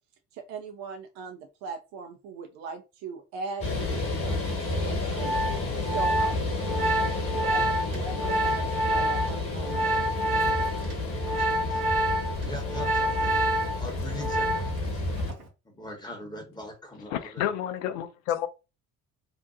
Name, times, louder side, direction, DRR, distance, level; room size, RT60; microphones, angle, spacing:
voice 1, 0.5-3.7 3.9-5.3 5.9-7.6 7.9-9.9, right 4 dB, 40° right, 0.4 m, -39 dB
sound 1, 3.6-15.3, left 2 dB, 30° left, 1.2 m, -31 dB
Organ, 4.9-14.9 15.2-15.5, right 1 dB, 75° right, 0.8 m, -28 dB
voice 2, 11.4-11.8 12.4-15.0 15.6-17.5, left 1 dB, 10° left, 0.9 m, -42 dB
voice 3, 17.1-18.5, left 11 dB, 65° left, 0.5 m, -30 dB
2.7 x 2.1 x 2.4 m
figure-of-eight pair, 50°, 45 cm